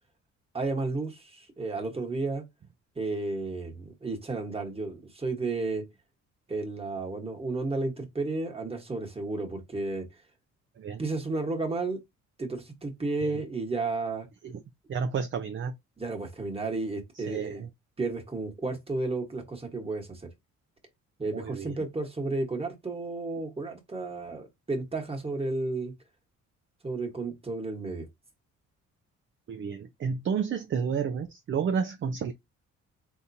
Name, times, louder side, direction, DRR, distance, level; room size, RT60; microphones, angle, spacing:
voice 1, 0.5-2.4 3.0-5.8 6.5-10.1 11.0-12.0 12.4-14.3 16.0-17.6 18.0-20.2 21.2-25.9 26.8-28.1, right 3 dB, 20° right, 1.3 m, -32 dB
voice 2, 14.9-15.7 17.2-17.7 21.3-21.8 29.5-32.3, right 6 dB, 40° right, 0.5 m, -31 dB
3.6 x 2.8 x 2.7 m
cardioid pair, 90°, 30 cm